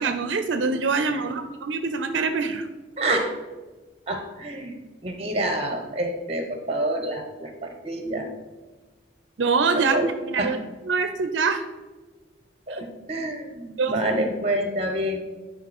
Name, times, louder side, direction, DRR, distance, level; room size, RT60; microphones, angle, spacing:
voice 1, 0.0-2.7 9.4-10.6 10.9-11.6 12.7-12.8 13.2-13.3 13.8-13.9, right 4 dB, 75° right, 8 dB, 0.5 m, -24 dB
voice 2, 3.0-3.4 4.1-4.8 5.0-8.3 9.7-10.1 10.4-10.6 12.7-15.2, right 1 dB, 30° right, 5 dB, 0.9 m, -27 dB
10.0 x 4.3 x 4.2 m, 1.3 s
head